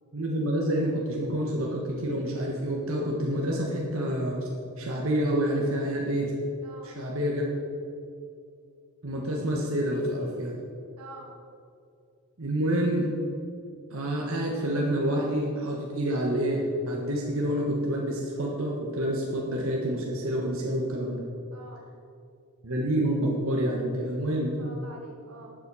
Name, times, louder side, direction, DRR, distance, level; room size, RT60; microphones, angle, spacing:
voice 1, 0.1-4.4 4.8-6.3 6.8-7.4 9.0-10.5 12.4-13.1 13.9-21.2 22.6-24.6, right 1 dB, 60° right, -2 dB, 1.5 m, -28 dB
voice 2, 6.6-6.9 11.0-11.3 21.5-21.9 24.6-25.6, right 2 dB, 90° right, 0 dB, 2.1 m, -46 dB
12.0 x 7.8 x 5.6 m, 2.4 s
head